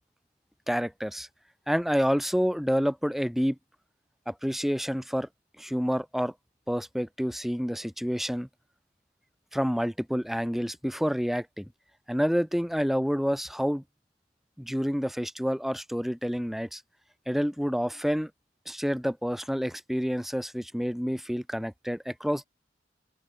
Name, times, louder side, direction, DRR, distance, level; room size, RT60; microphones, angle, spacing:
voice 1, 0.7-1.3 1.7-3.6 4.3-5.3 5.6-6.3 6.7-8.5 9.5-11.7 12.1-13.8 14.6-16.8 17.3-18.3 18.7-22.4, equal, ahead, 6.2 m, -28 dB
open air
head